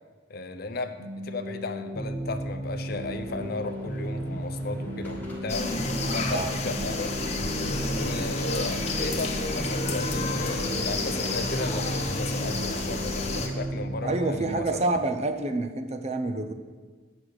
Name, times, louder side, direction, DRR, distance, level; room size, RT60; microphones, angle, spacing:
voice 1, 0.3-1.0 1.2-5.7 6.1-7.1 7.9-14.8, left 3 dB, 55° left, 8 dB, 0.7 m, -35 dB
sound 1, 1.0-14.6, right 1 dB, 65° right, 1.2 m, -34 dB
sound 2, 2.7-13.2, equal, 10° left, 1.6 m, -40 dB
sound 3, 5.5-13.5, left 3 dB, 35° left, 0.9 m, -30 dB
voice 2, 6.0-6.6 8.0-8.3 14.0-16.5, right 2 dB, 35° right, 9 dB, 0.6 m, -28 dB
8.3 x 6.0 x 6.4 m, 1.5 s
head